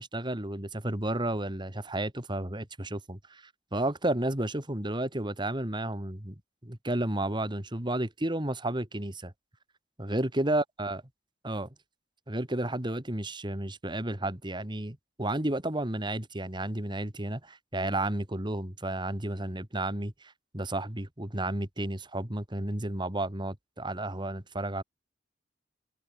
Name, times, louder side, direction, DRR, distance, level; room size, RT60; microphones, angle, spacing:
voice 1, 0.0-3.4 3.7-6.3 6.6-9.3 10.0-11.0 11.4-11.7 12.3-24.8, right 1 dB, 25° right, 2.6 m, -32 dB
head